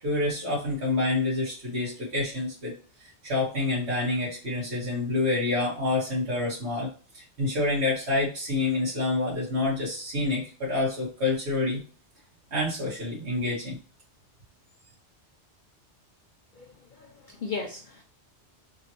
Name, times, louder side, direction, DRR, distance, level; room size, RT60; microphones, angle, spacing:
voice 1, 0.0-2.7 3.0-6.9 7.1-11.8 12.5-13.8, left 2 dB, 70° right, -7 dB, 1.7 m, -27 dB
voice 2, 16.6-18.0, left 4 dB, 55° left, 0 dB, 0.6 m, -37 dB
3.6 x 3.0 x 2.8 m, 0.38 s
omnidirectional pair, 1.2 m